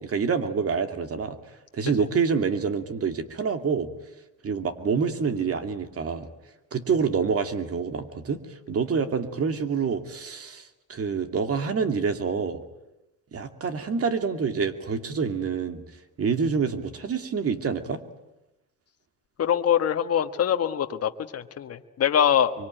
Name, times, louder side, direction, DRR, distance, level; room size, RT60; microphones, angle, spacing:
voice 1, 0.0-1.4 1.7-3.9 4.4-6.3 6.7-8.4 8.7-12.6 13.3-15.8 16.2-18.0, right 5 dB, 50° right, 8 dB, 2.5 m, -27 dB
voice 2, 19.4-22.5, left 9 dB, 55° left, 6 dB, 1.4 m, -23 dB
24.5 x 23.5 x 9.1 m, 0.95 s
cardioid pair, 90°, 30 cm